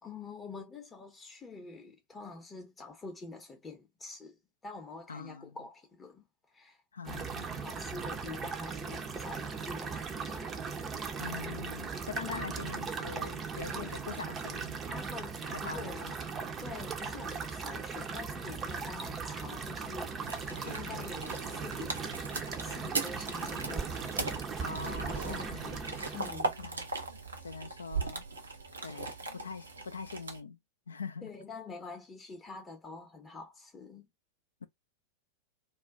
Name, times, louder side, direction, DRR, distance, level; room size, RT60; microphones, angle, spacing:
voice 1, 0.0-4.4 4.6-6.2 6.5-6.8 7.2-11.0 12.3-12.4 13.7-14.0 14.9-16.2 16.6-20.2 20.5-22.0 22.6-24.0 25.2-25.7 26.1-26.7 31.2-34.1, left 4 dB, 20° left, 0.6 m, -46 dB
voice 2, 5.1-5.5 6.9-7.6 11.2-14.8 15.5-16.1 20.3-20.4 20.7-21.1 24.6-25.8 26.6-26.9 27.4-28.3 28.8-29.1 29.3-30.6 30.9-31.3 34.6-34.7, left 5 dB, 70° left, 0.3 m, -43 dB
sound 1, 7.0-26.3, right 5 dB, 25° right, 0.5 m, -38 dB
sound 2, 20.3-30.4, right 3 dB, 75° right, 0.6 m, -39 dB
2.4 x 2.2 x 3.5 m
figure-of-eight pair, 90°, 0 cm